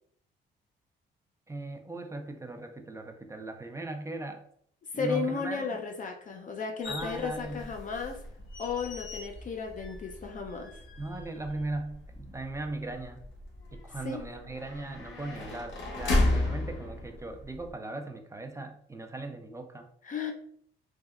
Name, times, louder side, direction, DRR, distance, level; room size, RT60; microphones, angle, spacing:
voice 1, 1.5-4.4 4.9-5.8 6.9-7.7 11.0-13.2 13.7-19.9, right 2 dB, 15° right, 5 dB, 0.3 m, -38 dB
voice 2, 4.9-8.2 8.6-10.8 14.0-14.2 20.0-20.3, left 5 dB, 40° left, 3 dB, 0.5 m, -34 dB
sound 1, 6.8-17.7, left 1 dB, 70° left, 0.8 m, -35 dB
3.4 x 2.1 x 2.3 m, 0.65 s
cardioid pair, 90°, 20 cm